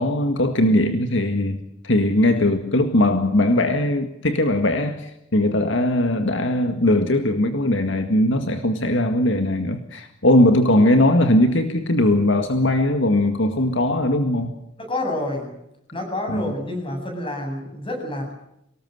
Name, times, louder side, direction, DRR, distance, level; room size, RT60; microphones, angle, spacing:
voice 1, 0.0-14.5 16.3-16.5, left 1 dB, 70° left, 7 dB, 1.9 m, -20 dB
voice 2, 14.8-15.5 15.9-18.3, left 1 dB, 30° left, 4 dB, 8.0 m, -28 dB
25.0 x 19.5 x 7.9 m, 0.80 s
head